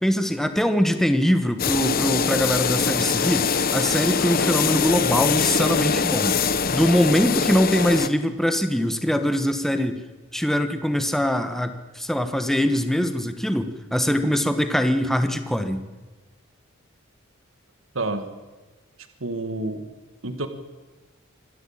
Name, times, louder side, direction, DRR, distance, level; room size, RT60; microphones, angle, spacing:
voice 1, 0.0-6.4 6.7-10.0 10.3-15.8, equal, ahead, 8 dB, 1.3 m, -22 dB
sound 1, 1.6-8.1, left 6 dB, 45° left, 0.9 m, -23 dB
voice 2, 17.9-18.3 19.2-19.9 20.2-20.5, right 2 dB, 70° right, 8 dB, 1.8 m, -28 dB
26.0 x 13.0 x 8.8 m, 1.2 s
head